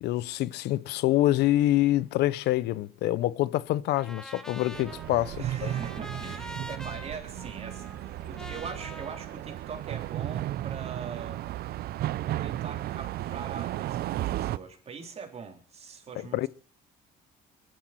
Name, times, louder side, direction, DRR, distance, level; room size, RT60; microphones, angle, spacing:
voice 1, 0.0-5.7 16.3-16.5, left 15 dB, 80° left, 0.6 m, -26 dB
Trumpet, 3.9-10.2, equal, 5° left, 1.5 m, -45 dB
sound 1, 4.7-14.6, right 14 dB, 65° right, 0.6 m, -34 dB
sound 2, 5.0-9.1 10.8-11.6, left 3 dB, 45° left, 6.3 m, -61 dB
voice 2, 5.4-11.4 12.3-16.5, right 5 dB, 40° right, 3.7 m, -42 dB
22.0 x 11.5 x 4.5 m
cardioid pair, 110°, 17 cm